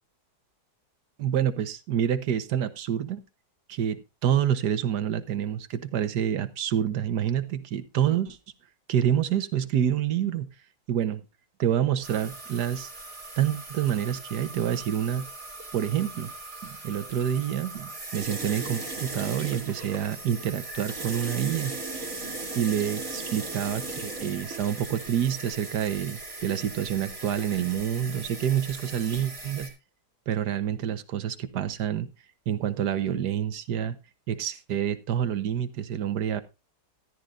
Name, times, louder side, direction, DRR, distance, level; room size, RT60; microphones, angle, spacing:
voice 1, 1.2-3.2 3.7-8.4 8.9-10.5 10.9-11.2 11.6-12.9 13.4-15.2 15.7-16.3 16.6-21.7 22.6-29.7 30.3-32.1 32.5-34.0 34.3-36.4, right 10 dB, 80° right, 11 dB, 1.6 m, -27 dB
sound 1, 12.0-29.7, right 2 dB, 55° right, 3.6 m, -38 dB
14.0 x 11.5 x 2.5 m, 0.28 s
omnidirectional pair, 1.7 m